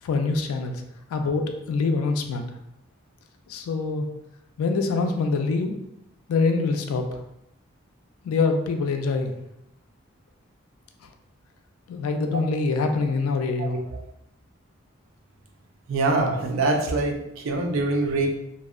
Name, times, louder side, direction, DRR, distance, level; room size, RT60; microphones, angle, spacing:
voice 1, 0.0-0.8 1.1-2.5 3.5-4.1 4.6-5.8 6.3-7.2 8.2-9.3 11.9-13.8, left 4 dB, 85° left, 5 dB, 0.3 m, -25 dB
voice 2, 15.9-18.3, right 2 dB, 70° right, 2 dB, 0.4 m, -24 dB
2.6 x 2.0 x 2.3 m, 0.84 s
head